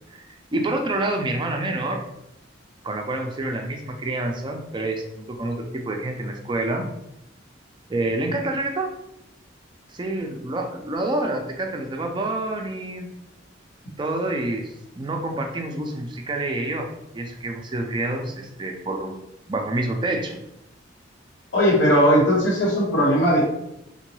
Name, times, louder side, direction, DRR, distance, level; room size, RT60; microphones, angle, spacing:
voice 1, 0.5-2.0 2.8-6.9 7.9-8.9 9.9-13.1 14.0-16.9 17.1-19.1 19.5-20.4, right 2 dB, 25° right, 2 dB, 0.4 m, -27 dB
voice 2, 21.5-23.4, equal, 70° left, -4 dB, 1.0 m, -18 dB
3.7 x 2.2 x 3.1 m, 0.83 s
head